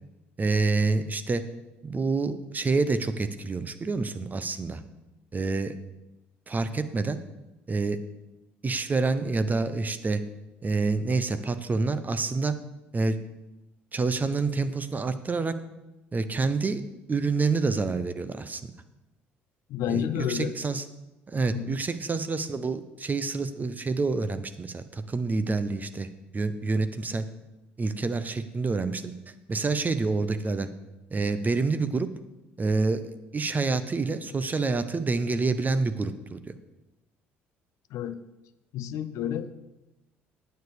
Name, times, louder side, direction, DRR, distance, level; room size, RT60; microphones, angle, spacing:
voice 1, 0.4-1.4 1.8-4.8 5.3-5.7 6.5-7.2 7.7-8.0 8.6-10.2 10.6-12.5 12.9-13.2 13.9-15.5 16.1-16.8 17.1-18.6 19.9-20.8 21.3-27.3 27.8-29.1 29.5-30.7 31.1-32.1 32.6-33.0 33.3-36.4, right 3 dB, 30° right, 11 dB, 0.9 m, -27 dB
voice 2, 19.7-20.5 21.5-21.8 37.9-38.2 38.7-39.5, left 10 dB, 60° left, 13 dB, 0.6 m, -30 dB
9.5 x 7.0 x 6.5 m, 0.99 s
hypercardioid pair, 55°, 6 cm